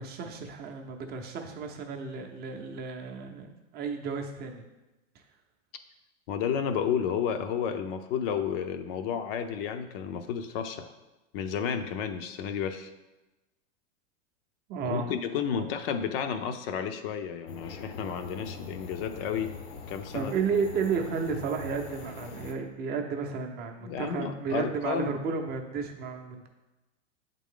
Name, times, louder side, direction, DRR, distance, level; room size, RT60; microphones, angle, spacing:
voice 1, 0.0-4.6 5.1-5.2 14.7-15.2 15.6-15.7 20.1-26.5, right 5 dB, 25° right, 4 dB, 0.6 m, -33 dB
voice 2, 6.3-10.9 11.3-12.9 14.8-19.5 19.9-20.3 23.8-25.2, left 7 dB, 50° left, 8 dB, 0.6 m, -32 dB
sound 1, 17.5-22.5, left 4 dB, 70° left, 1.0 m, -43 dB
8.0 x 3.7 x 3.7 m, 1.1 s
supercardioid pair, 135°, 38 cm